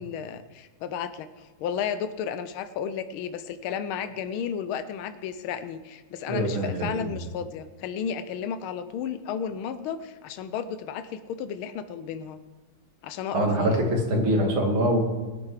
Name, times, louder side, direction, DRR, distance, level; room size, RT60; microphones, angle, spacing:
voice 1, 0.0-12.4 13.0-13.8, left 8 dB, 90° left, 11 dB, 1.6 m, -33 dB
voice 2, 6.3-7.0 13.3-15.0, right 1 dB, 85° right, 2 dB, 3.0 m, -24 dB
20.5 x 8.7 x 4.8 m, 1.3 s
omnidirectional pair, 2.2 m